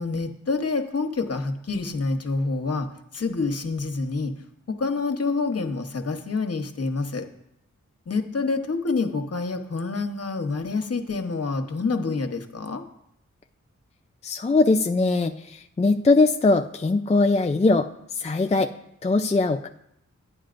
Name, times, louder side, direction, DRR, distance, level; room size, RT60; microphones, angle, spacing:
voice 1, 0.0-4.3 4.7-7.3 8.1-12.8, left 3 dB, 55° left, 6 dB, 1.0 m, -27 dB
voice 2, 14.2-18.7 19.0-19.7, left 3 dB, 20° left, 6 dB, 0.4 m, -21 dB
12.0 x 9.0 x 2.5 m, 0.79 s
cardioid pair, 45°, 30 cm